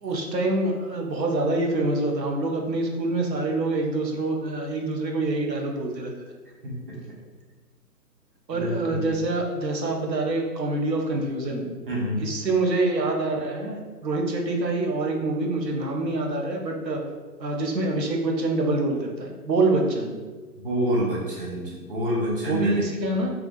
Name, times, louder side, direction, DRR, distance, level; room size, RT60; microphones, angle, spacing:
voice 1, 0.0-6.1 8.5-11.7 12.2-17.0 17.4-20.1 22.5-23.3, right 2 dB, 90° right, 1 dB, 0.7 m, -26 dB
voice 2, 8.5-9.1 11.9-12.2 20.6-22.8, equal, 35° right, -6 dB, 0.7 m, -27 dB
2.3 x 2.1 x 3.0 m, 1.4 s
figure-of-eight pair, 135°, 49 cm